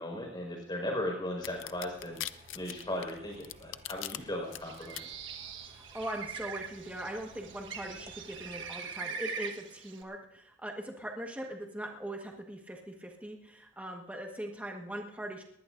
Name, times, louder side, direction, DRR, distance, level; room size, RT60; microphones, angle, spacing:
voice 1, 0.0-5.2, left 1 dB, 25° left, 1 dB, 5.0 m, -37 dB
sound 1, 1.4-4.2 4.5-5.0, left 14 dB, 80° left, 0.5 m, -40 dB
sound 2, 1.4-8.7, right 1 dB, 30° right, 1.3 m, -57 dB
Bird, 4.5-10.0, right 6 dB, 70° right, 1.4 m, -42 dB
voice 2, 5.7-15.4, right 1 dB, 5° right, 1 dB, 1.5 m, -41 dB
20.0 x 19.5 x 2.6 m, 0.82 s
head